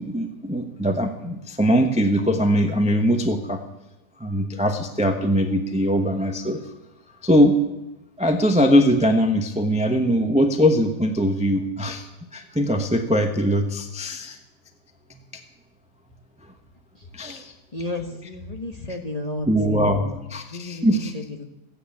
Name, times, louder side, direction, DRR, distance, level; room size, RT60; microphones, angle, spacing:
voice 1, 0.0-3.6 4.2-6.6 7.2-7.6 8.2-12.1 12.3-14.4 17.1-17.5 19.5-21.1, equal, 5° right, 5 dB, 0.6 m, -21 dB
voice 2, 17.7-20.1 20.5-21.4, left 2 dB, 25° left, 4 dB, 1.0 m, -32 dB
14.5 x 9.6 x 8.5 m, 0.92 s
omnidirectional pair, 2.1 m